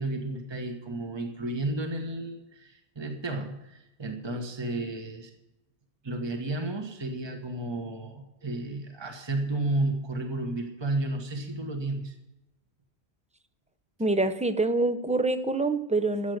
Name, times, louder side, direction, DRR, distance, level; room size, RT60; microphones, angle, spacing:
voice 1, 0.0-5.3 6.0-12.2, right 2 dB, 25° right, 3 dB, 1.4 m, -32 dB
voice 2, 14.0-16.4, right 2 dB, 10° right, 10 dB, 0.6 m, -26 dB
14.0 x 8.1 x 7.9 m, 0.93 s
omnidirectional pair, 1.1 m